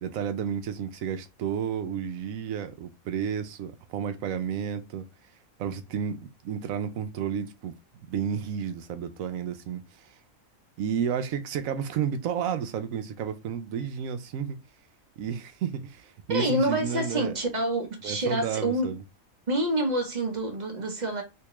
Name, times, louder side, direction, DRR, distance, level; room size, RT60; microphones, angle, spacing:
voice 1, 0.0-5.1 5.6-7.7 8.1-10.1 10.8-14.6 15.2-17.3 18.0-19.0, right 8 dB, 85° right, 1.0 m, -31 dB
voice 2, 16.3-18.9 19.5-21.2, right 1 dB, 40° right, 0.9 m, -27 dB
3.4 x 2.8 x 3.0 m
omnidirectional pair, 1.4 m